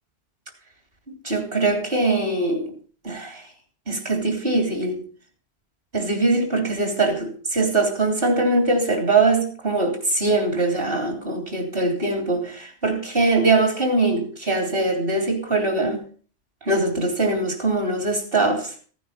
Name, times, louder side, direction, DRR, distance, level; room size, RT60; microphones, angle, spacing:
voice 1, 1.1-2.7 3.0-3.4 3.9-5.1 5.9-16.0 16.6-18.9, right 2 dB, 60° right, 3.8 m, -22 dB
16.0 x 9.2 x 5.7 m
omnidirectional pair, 1.1 m